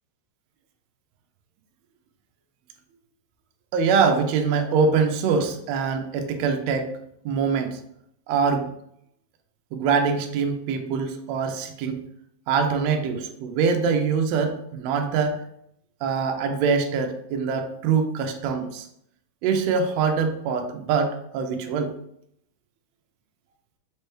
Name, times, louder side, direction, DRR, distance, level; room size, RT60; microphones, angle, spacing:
voice 1, 3.7-6.9 7.2-7.8 8.3-8.7 9.7-12.0 12.5-15.4 16.0-18.9 19.4-21.9, right 5 dB, 90° right, 5 dB, 1.5 m, -24 dB
5.1 x 3.2 x 3.0 m, 0.74 s
omnidirectional pair, 3.6 m